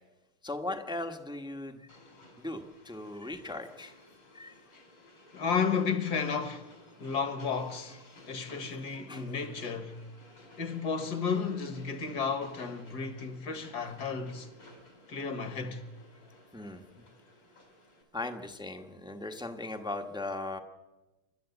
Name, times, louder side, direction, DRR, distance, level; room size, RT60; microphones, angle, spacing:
voice 1, 0.4-1.9 2.4-3.9 4.3-4.5 9.1-9.2 16.5-16.8 18.1-20.6, left 2 dB, 5° right, 0.9 m, -38 dB
Train, 1.9-18.0, left 1 dB, 80° left, 5.6 m, -56 dB
voice 2, 5.3-8.0 8.3-10.0 10.6-14.5 15.1-15.8, left 5 dB, 50° left, 2.0 m, -33 dB
28.5 x 13.0 x 8.3 m
omnidirectional pair, 2.4 m